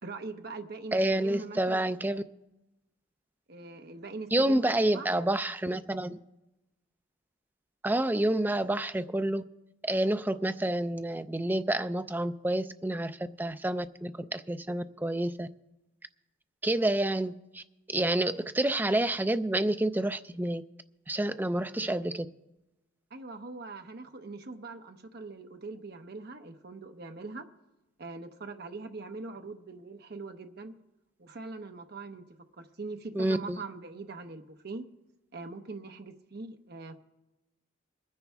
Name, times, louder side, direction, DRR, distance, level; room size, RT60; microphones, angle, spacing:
voice 1, 0.0-1.9 3.5-5.2 23.1-27.4 28.0-30.7 31.2-34.8 35.3-37.0, right 3 dB, 50° right, 6 dB, 0.8 m, -42 dB
voice 2, 0.9-2.2 4.3-6.2 7.8-9.4 9.8-15.5 16.6-17.6 17.9-20.6 21.1-22.3 33.1-33.6, right 1 dB, 10° right, 9 dB, 0.3 m, -28 dB
22.0 x 9.8 x 3.5 m, 0.98 s
head